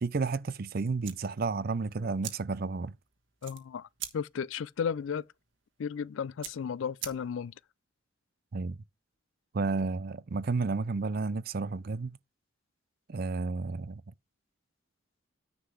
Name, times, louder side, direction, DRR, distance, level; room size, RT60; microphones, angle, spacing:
voice 1, 0.0-2.9 8.5-8.8 9.5-12.2 13.1-14.0, right 4 dB, 50° right, 0.5 m, -31 dB
sound 1, 1.0-7.6, right 11 dB, 70° right, 1.3 m, -46 dB
voice 2, 3.4-3.9 4.1-5.2 5.8-7.5, left 7 dB, 75° left, 0.4 m, -34 dB
9.8 x 3.8 x 6.1 m
head